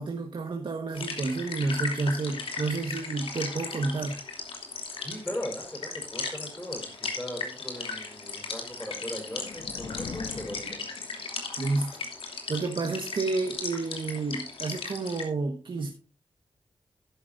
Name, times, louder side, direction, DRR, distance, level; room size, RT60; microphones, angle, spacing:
voice 1, 0.0-4.2 11.6-11.9 12.5-15.9, right 3 dB, 60° right, 3 dB, 1.4 m, -30 dB
sound 1, 0.9-15.2, left 4 dB, 85° left, 3.0 m, -37 dB
voice 2, 4.9-10.8, equal, 10° left, -2 dB, 4.8 m, -39 dB
sound 2, 8.7-11.5, left 5 dB, 65° left, 0.9 m, -42 dB
12.5 x 10.5 x 2.6 m, 0.32 s
wide cardioid pair, 90°, 9 cm